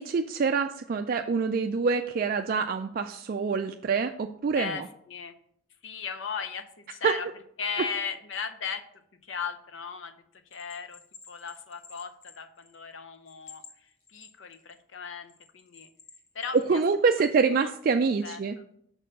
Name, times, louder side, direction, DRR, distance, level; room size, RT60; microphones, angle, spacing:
voice 1, 0.0-4.8 7.0-7.1 16.7-18.5, right 5 dB, 45° right, 6 dB, 0.3 m, -26 dB
voice 2, 4.5-5.4 5.8-7.3 7.6-8.8 9.2-10.1 10.5-11.0 11.3-15.9 16.3-16.8 17.6-17.7 18.2-18.4, left 6 dB, 70° left, 8 dB, 0.7 m, -37 dB
Bell, 10.5-12.9 13.3-14.8 15.3-16.7, left 5 dB, 85° left, 1.5 m, -51 dB
6.2 x 4.4 x 6.5 m, 0.70 s
head